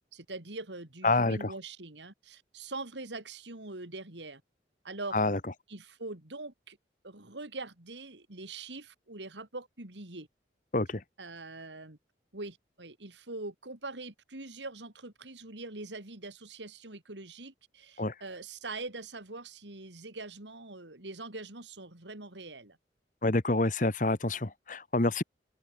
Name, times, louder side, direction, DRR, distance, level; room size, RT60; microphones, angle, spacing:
voice 1, 0.1-4.4 4.8-5.2 5.7-6.8 7.0-10.3 11.2-12.0 12.3-22.8, right 2 dB, 85° right, 3.4 m, -43 dB
voice 2, 1.0-1.5 5.1-5.4 10.7-11.0 18.0-18.1 23.2-25.2, left 2 dB, 45° left, 1.4 m, -27 dB
open air
head